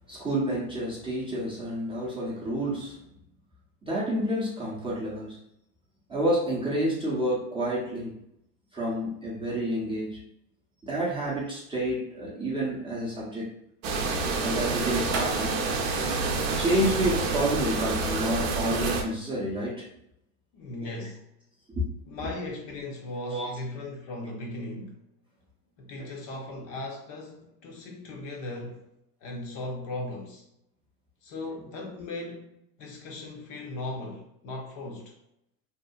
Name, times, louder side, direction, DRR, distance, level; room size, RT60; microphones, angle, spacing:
voice 1, 0.1-3.0 3.8-5.4 6.1-8.2 8.7-10.2 10.8-13.5 14.4-15.6 16.6-19.9 20.8-20.9 21.8-21.9 23.3-23.5 26.0-26.1, right 1 dB, 10° right, 0.6 m, -29 dB
sound 1, 13.8-19.0, right 3 dB, 55° right, 0.6 m, -28 dB
voice 2, 20.5-21.3 22.1-25.0 25.8-28.9 29.2-30.5 31.2-32.5 32.8-35.1, left 2 dB, 40° left, 0.6 m, -37 dB
2.7 x 2.3 x 2.3 m
hypercardioid pair, 105°, 48 cm